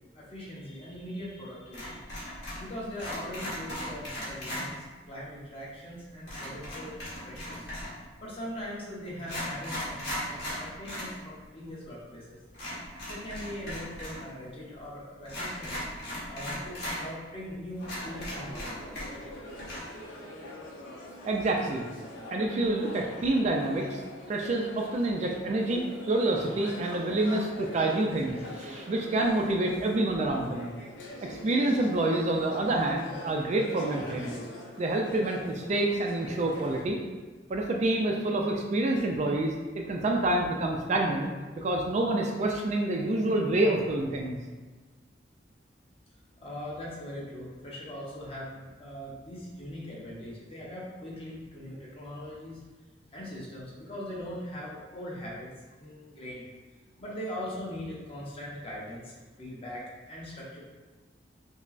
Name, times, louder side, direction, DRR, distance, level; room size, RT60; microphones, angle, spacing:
voice 1, 0.1-7.7 8.2-12.4 13.1-15.7 16.3-19.1 46.4-52.6 53.1-55.5 55.8-56.4 57.0-60.6, equal, 30° left, -6 dB, 0.9 m, -41 dB
sound 1, 1.7-2.7 2.9-4.7 6.3-8.0 8.7-8.8 9.2-11.1 11.4-11.5 12.5-14.2 14.5-14.6 15.2-17.0 17.4-17.5 17.8-19.3 19.6-19.8, left 1 dB, 60° left, 1.4 m, -37 dB
sound 2, 17.8-36.8, left 1 dB, 75° left, 0.7 m, -43 dB
voice 2, 21.3-21.8 22.3-24.0 24.3-30.7 31.2-34.3 34.8-37.0 37.5-41.3 41.6-44.4, right 2 dB, 40° right, 1 dB, 0.3 m, -27 dB
5.2 x 2.0 x 2.5 m, 1.3 s
head